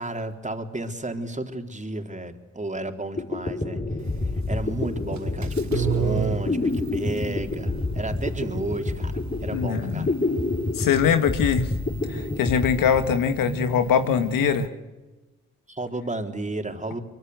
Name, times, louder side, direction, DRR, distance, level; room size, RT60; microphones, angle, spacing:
voice 1, 0.0-10.4 15.7-17.0, right 2 dB, 20° right, 4 dB, 3.9 m, -33 dB
sound 1, 3.2-13.6, left 2 dB, 30° left, 4.1 m, -28 dB
sound 2, 4.0-14.7, right 8 dB, 55° right, 1.4 m, -34 dB
voice 2, 9.5-10.1 10.7-11.8 12.1-14.7, left 8 dB, 80° left, 8 dB, 2.0 m, -22 dB
24.5 x 23.5 x 8.0 m, 1.1 s
supercardioid pair, 45°, 33 cm